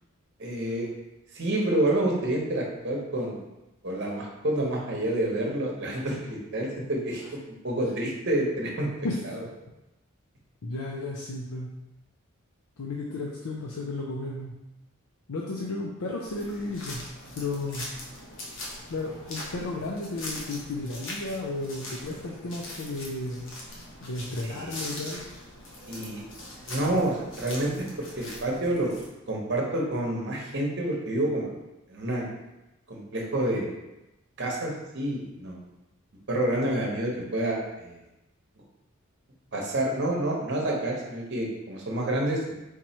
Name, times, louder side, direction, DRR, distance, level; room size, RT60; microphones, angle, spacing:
voice 1, 0.4-0.9 1.3-3.4 3.8-8.9 9.2-9.4 24.4-24.8 25.9-26.2 26.7-27.7 28.2-28.9 29.3-31.5 31.9-32.3 32.9-33.7 34.4-35.6 36.3-38.0 39.5-42.4, right 1 dB, 55° right, -1 dB, 0.9 m, -28 dB
voice 2, 10.6-11.7 12.8-14.5 15.3-17.0 17.4-17.9 18.9-23.4 24.0-25.2, left 2 dB, 80° left, -2 dB, 0.5 m, -33 dB
sound 1, 16.2-29.1, left 1 dB, 60° left, 1.0 m, -41 dB
3.7 x 3.0 x 4.2 m, 0.98 s
head